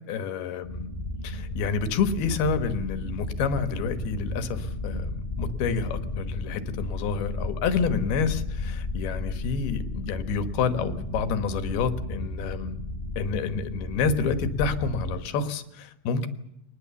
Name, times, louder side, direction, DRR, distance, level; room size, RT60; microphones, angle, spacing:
voice 1, 0.1-0.9 1.2-12.8 13.2-16.3, left 5 dB, 85° left, 9 dB, 3.4 m, -28 dB
sound 1, 0.6-15.3, left 2 dB, 10° left, 3.8 m, -33 dB
24.5 x 20.0 x 7.1 m, 0.84 s
omnidirectional pair, 4.4 m